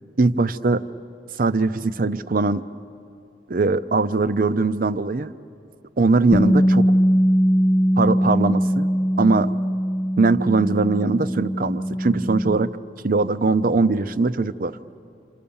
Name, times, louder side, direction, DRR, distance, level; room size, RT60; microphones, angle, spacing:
voice 1, 0.2-0.9 1.4-2.6 3.5-5.3 6.0-6.9 8.0-8.9 9.2-9.5 10.2-12.7 13.0-14.8, right 3 dB, 50° right, 13 dB, 0.6 m, -21 dB
Bass guitar, 6.3-12.6, equal, 45° left, 0.9 m, -21 dB
28.0 x 27.5 x 7.2 m, 2.6 s
head